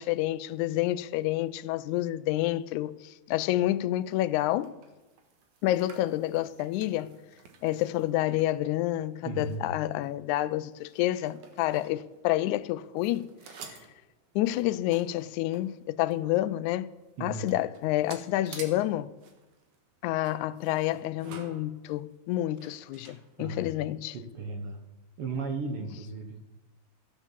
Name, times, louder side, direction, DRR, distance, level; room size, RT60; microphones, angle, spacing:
voice 1, 0.0-4.7 5.6-7.2 7.6-13.3 13.6-13.8 14.4-16.9 17.2-19.1 20.0-24.2, left 15 dB, 90° left, 2.0 m, -29 dB
sound 1, 4.1-12.7 13.0-16.3 16.7-16.8 17.0-23.8, right 6 dB, 85° right, 2.8 m, -51 dB
voice 2, 9.2-9.8 17.2-17.5 23.4-24.8 25.2-26.4, right 3 dB, 60° right, 1.9 m, -36 dB
13.5 x 9.6 x 7.3 m
omnidirectional pair, 3.3 m